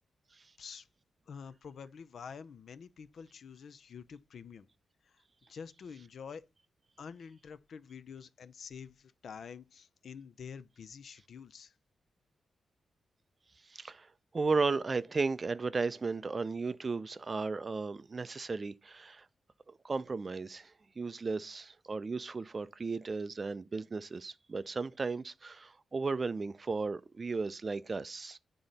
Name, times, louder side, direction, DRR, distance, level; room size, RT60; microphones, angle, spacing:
voice 1, 1.3-4.7 5.5-6.4 7.0-11.7, left 6 dB, 65° left, 0.5 m, -48 dB
voice 2, 13.7-14.1 14.3-19.3 19.8-28.4, right 4 dB, 35° right, 0.4 m, -35 dB
8.9 x 3.8 x 4.1 m
wide cardioid pair, 115°, 0 cm